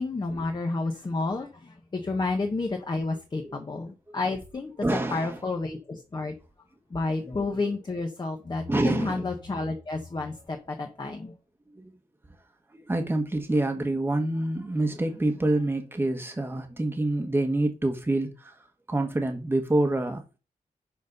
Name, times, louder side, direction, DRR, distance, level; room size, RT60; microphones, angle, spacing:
voice 1, 0.0-6.3 6.9-11.3, left 3 dB, 30° left, 1.3 m, -31 dB
voice 2, 3.4-3.8 4.1-4.2 4.8-5.4 6.9-7.0 8.7-9.2 11.1-11.2 11.7-11.9 12.7-18.5 18.9-20.4, right 2 dB, 15° right, 1.4 m, -27 dB
11.0 x 4.2 x 5.4 m
wide cardioid pair, 160°, 15 cm